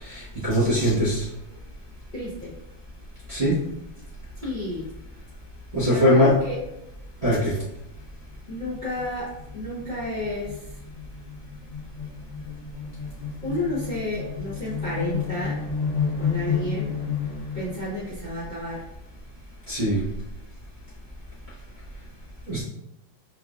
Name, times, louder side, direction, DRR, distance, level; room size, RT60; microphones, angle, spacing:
voice 1, 0.0-1.3 3.3-3.5 5.7-6.3 7.2-7.5 19.7-20.0 22.5-22.6, equal, 40° right, -10 dB, 1.0 m, -21 dB
voice 2, 2.1-2.5 4.4-4.9 5.8-6.6 8.5-10.8 13.4-15.6 16.2-16.9 17.5-18.9, left 1 dB, 35° left, -10 dB, 0.8 m, -31 dB
sound 1, 8.0-8.1 8.3-17.9, left 6 dB, 60° left, 1.9 m, -31 dB
4.8 x 2.4 x 2.4 m, 0.88 s
omnidirectional pair, 2.3 m